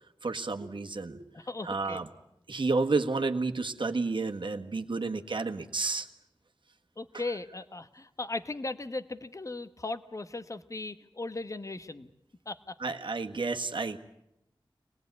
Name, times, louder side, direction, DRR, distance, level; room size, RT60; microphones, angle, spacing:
voice 1, 0.2-1.2 1.6-2.1 2.5-6.1 12.8-14.0, right 3 dB, 65° right, 5 dB, 1.6 m, -31 dB
voice 2, 1.3-2.0 7.0-12.1 12.5-12.9, left 2 dB, 35° left, 12 dB, 1.1 m, -37 dB
25.0 x 19.0 x 9.5 m, 0.84 s
wide cardioid pair, 70°, 9 cm